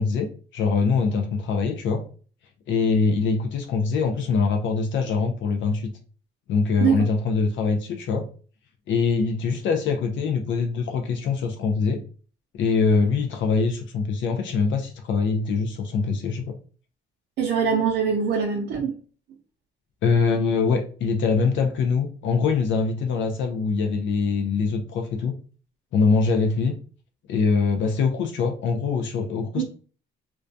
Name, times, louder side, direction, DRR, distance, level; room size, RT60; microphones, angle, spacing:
voice 1, 0.0-2.0 2.7-5.9 6.5-8.2 8.9-12.0 12.5-16.5 20.0-25.3 25.9-26.8 27.3-29.6, left 4 dB, 70° left, 5 dB, 0.5 m, -23 dB
voice 2, 17.4-19.0 29.6-29.7, right 6 dB, 65° right, -1 dB, 0.5 m, -23 dB
2.2 x 2.2 x 2.5 m, 0.39 s
cardioid pair, 90°, 20 cm